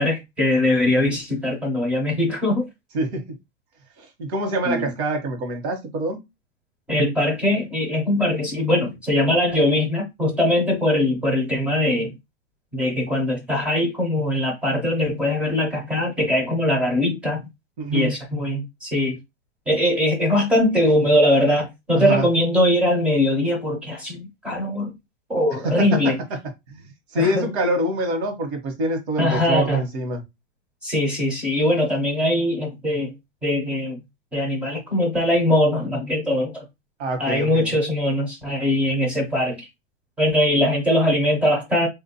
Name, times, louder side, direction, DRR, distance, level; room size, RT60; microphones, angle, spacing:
voice 1, 0.0-2.7 4.7-4.9 6.9-12.1 12.7-17.4 17.9-19.2 19.7-24.9 25.3-26.2 27.1-27.5 29.2-29.8 30.8-33.1 33.4-34.0 34.3-36.6 37.2-39.7 40.2-41.9, left 1 dB, 5° right, 0.4 m, -21 dB
voice 2, 2.9-3.4 4.0-6.2 17.8-18.1 21.9-22.3 25.6-26.2 26.7-30.2 37.0-37.7, right 1 dB, 65° right, 1.2 m, -25 dB
3.4 x 2.5 x 2.7 m
hypercardioid pair, 150°, 36 cm